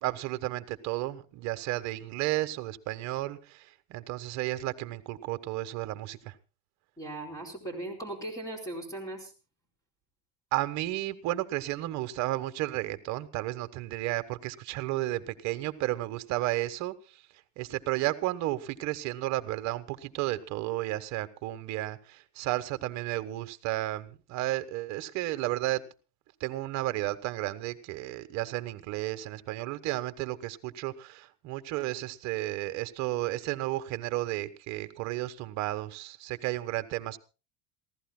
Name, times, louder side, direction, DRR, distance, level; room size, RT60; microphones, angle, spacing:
voice 1, 0.0-6.3 10.5-17.2 17.6-25.8 26.4-37.2, right 16 dB, 45° right, 1.3 m, -33 dB
voice 2, 7.0-9.3, right 1 dB, 10° left, 4.4 m, -38 dB
27.0 x 15.5 x 2.2 m
cardioid pair, 155°, 37 cm